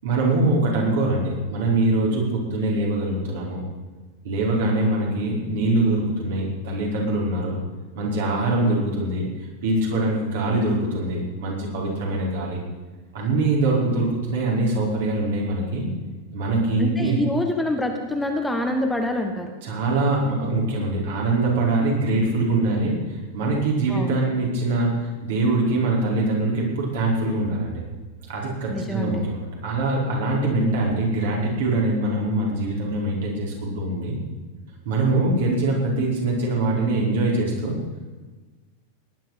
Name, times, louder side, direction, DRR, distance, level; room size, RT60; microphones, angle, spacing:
voice 1, 0.0-3.6 4.2-7.6 7.9-9.2 9.6-12.6 13.1-15.9 16.3-17.2 19.6-27.8 28.3-34.1 34.8-37.7, right 2 dB, 55° right, -2 dB, 4.9 m, -23 dB
voice 2, 16.8-19.5 23.9-24.2 28.7-29.3, left 1 dB, 5° left, 3 dB, 1.5 m, -26 dB
18.5 x 11.0 x 5.9 m, 1.3 s
figure-of-eight pair, 90°, 0 cm